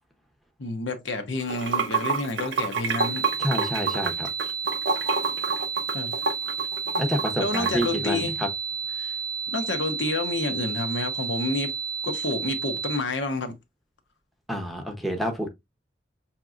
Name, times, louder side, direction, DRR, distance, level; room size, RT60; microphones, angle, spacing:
voice 1, 0.6-3.3 5.9-6.1 7.4-8.3 9.0-9.1 9.5-11.7 12.0-13.5, left 2 dB, 80° left, 0.9 m, -29 dB
Water / Sink (filling or washing), 1.4-7.9, right 4 dB, 85° right, 0.8 m, -27 dB
sound 1, 3.0-13.0, right 6 dB, 20° right, 0.4 m, -31 dB
voice 2, 3.4-4.3 7.0-8.5 14.5-15.5, equal, ahead, 0.8 m, -28 dB
5.9 x 2.9 x 2.4 m
head